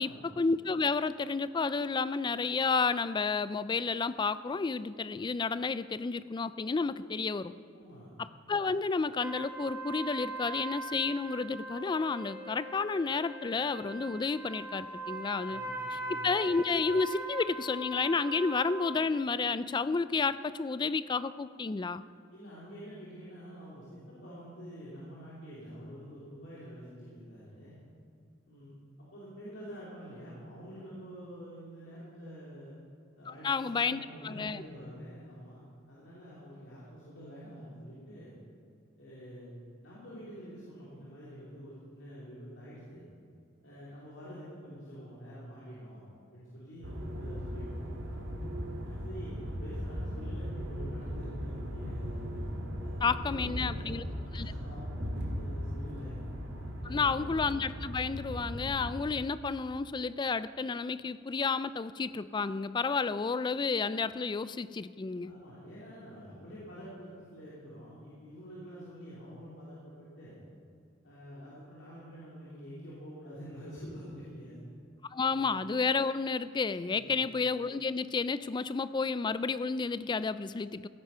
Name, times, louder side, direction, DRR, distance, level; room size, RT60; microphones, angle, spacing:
voice 1, 0.0-7.5 8.2-15.6 15.9-22.0 33.3-34.6 53.0-54.0 54.3-54.5 56.8-65.3 75.1-80.9, left 4 dB, 25° left, 15 dB, 0.3 m, -31 dB
voice 2, 7.7-8.1 15.5-16.2 22.3-27.8 28.5-32.7 33.2-35.6 35.9-38.3 39.0-43.0 43.6-47.9 48.8-52.2 52.8-53.9 54.4-56.2 56.8-57.2 65.2-70.4 71.0-74.6 75.3-75.5 76.9-77.3, equal, 70° left, -8 dB, 2.9 m, -47 dB
sound 1, 9.2-19.1, right 2 dB, 10° right, 1.3 m, -41 dB
sound 2, 46.8-58.9, equal, 85° right, 2.1 m, -38 dB
15.5 x 9.0 x 5.6 m, 2.4 s
head